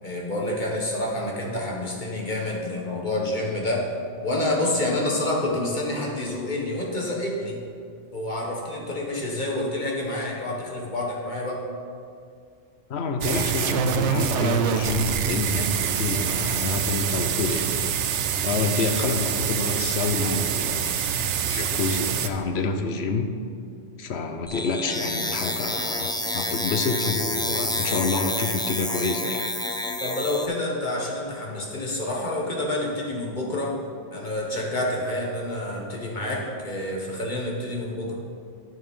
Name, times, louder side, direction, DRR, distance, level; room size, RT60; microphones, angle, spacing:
voice 1, 0.0-3.8 4.2-7.6 8.1-11.6 30.0-33.8 34.1-38.1, left 1 dB, 45° left, -2 dB, 1.7 m, -28 dB
voice 2, 12.9-17.9 18.4-23.3 24.0-29.4, left 4 dB, 70° left, 6 dB, 1.0 m, -28 dB
sound 1, 13.2-22.3, right 8 dB, 85° right, 0.9 m, -25 dB
sound 2, 24.5-30.5, left 1 dB, 5° left, 0.4 m, -28 dB
9.5 x 7.1 x 5.5 m, 2.4 s
omnidirectional pair, 1.2 m